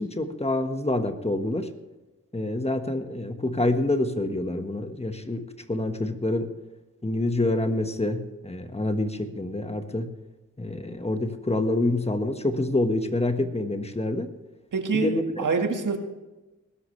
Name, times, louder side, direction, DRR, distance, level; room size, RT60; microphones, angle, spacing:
voice 1, 0.0-1.7 2.3-5.4 5.7-6.5 7.0-10.1 10.6-14.3 14.9-15.4, left 2 dB, 20° left, 7 dB, 1.4 m, -27 dB
voice 2, 14.7-16.0, right 4 dB, 80° right, 4 dB, 1.8 m, -26 dB
20.0 x 12.0 x 3.3 m, 1.1 s
wide cardioid pair, 80°, 31 cm